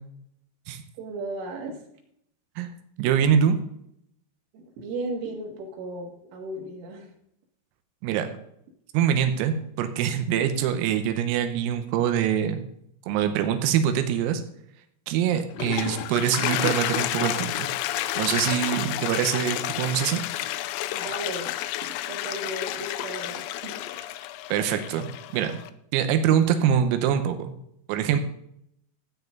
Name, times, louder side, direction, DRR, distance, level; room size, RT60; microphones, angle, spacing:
voice 1, 1.0-1.8 4.5-7.1 20.9-21.6 21.8-24.2, right 2 dB, 70° right, 1 dB, 4.4 m, -36 dB
voice 2, 3.0-3.6 8.0-8.3 8.9-12.6 13.1-14.4 15.1-17.7 18.2-20.2 24.5-25.1 25.3-25.5 25.9-27.5 27.9-28.2, right 9 dB, 90° right, 8 dB, 3.8 m, -24 dB
Toilet flush, 15.4-25.7, left 14 dB, 85° left, 3.4 m, -30 dB
15.5 x 9.0 x 4.0 m, 0.73 s
omnidirectional pair, 5.9 m